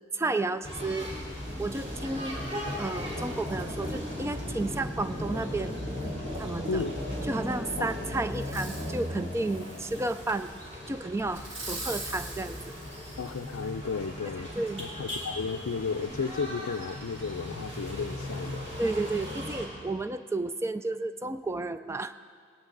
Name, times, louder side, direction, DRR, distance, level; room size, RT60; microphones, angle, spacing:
voice 1, 0.1-1.1 1.6-2.4 2.8-5.7 6.4-6.8 7.2-10.5 10.9-12.6 14.6-14.9 18.8-22.1, right 2 dB, 10° right, 12 dB, 0.3 m, -32 dB
sound 1, 0.6-19.7, left 1 dB, 30° right, 3.1 m, -37 dB
Fireworks, 8.3-9.0 9.5-10.5 11.3-13.7 14.3-14.4, right 2 dB, 60° right, 2.6 m, -42 dB
voice 2, 13.2-18.7, left 5 dB, 75° left, 3 dB, 0.5 m, -33 dB
18.5 x 17.0 x 3.9 m, 2.3 s
head